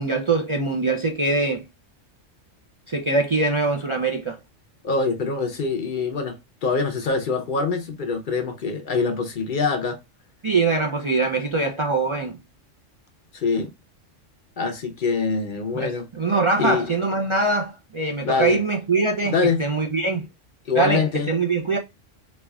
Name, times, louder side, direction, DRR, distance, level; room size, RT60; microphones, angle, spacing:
voice 1, 0.0-1.6 2.9-4.4 10.4-12.4 15.7-19.3 19.6-20.2 20.7-21.8, right 3 dB, 55° right, 0.3 m, -23 dB
voice 2, 4.8-10.0 13.3-13.7 14.6-16.1 16.6-16.9 18.2-18.6 19.2-19.6 20.7-21.3, left 4 dB, 55° left, 0.6 m, -24 dB
4.3 x 2.4 x 2.2 m
omnidirectional pair, 1.3 m